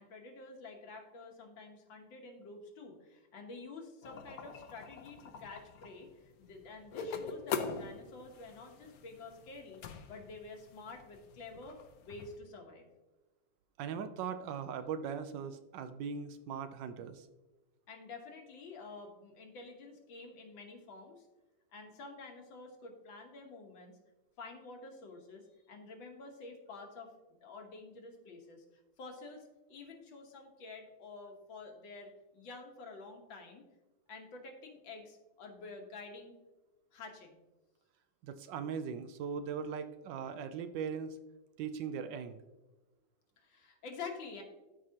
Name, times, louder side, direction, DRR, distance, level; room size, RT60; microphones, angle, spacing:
voice 1, 0.0-9.8 10.1-12.9 17.9-21.3 21.7-23.9 24.4-27.1 27.4-33.7 34.1-36.4 36.9-37.4 43.4-44.4, left 3 dB, 80° left, 3 dB, 1.9 m, -49 dB
sound 1, 4.0-12.4, left 6 dB, 65° left, 1.0 m, -44 dB
voice 2, 13.8-17.3 38.2-41.2 41.6-42.4, right 6 dB, 75° right, 10 dB, 1.2 m, -39 dB
13.5 x 4.8 x 2.8 m, 1.1 s
omnidirectional pair, 2.1 m